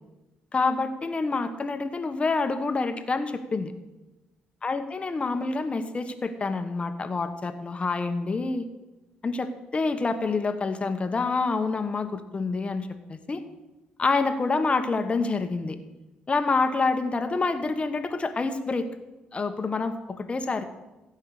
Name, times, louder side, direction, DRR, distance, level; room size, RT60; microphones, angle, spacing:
voice 1, 0.5-3.7 4.6-8.7 9.2-13.4 14.0-15.8 16.3-18.9 19.3-20.6, left 3 dB, 35° left, 9 dB, 1.3 m, -27 dB
15.5 x 5.6 x 8.3 m, 1.0 s
cardioid pair, 80°, 4 cm